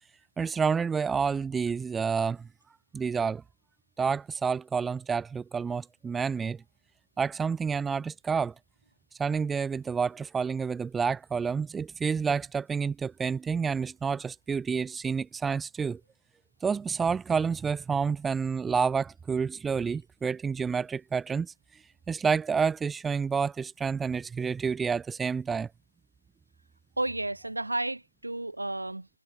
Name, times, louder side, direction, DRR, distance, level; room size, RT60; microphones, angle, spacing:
voice 1, 0.4-2.5 2.9-3.4 4.0-6.6 7.2-8.5 9.2-16.0 16.6-21.8 22.1-25.7, right 6 dB, 5° right, 0.6 m, -29 dB
voice 2, 27.0-29.1, right 2 dB, 65° right, 5.8 m, -32 dB
figure-of-eight pair, 165°, 0 cm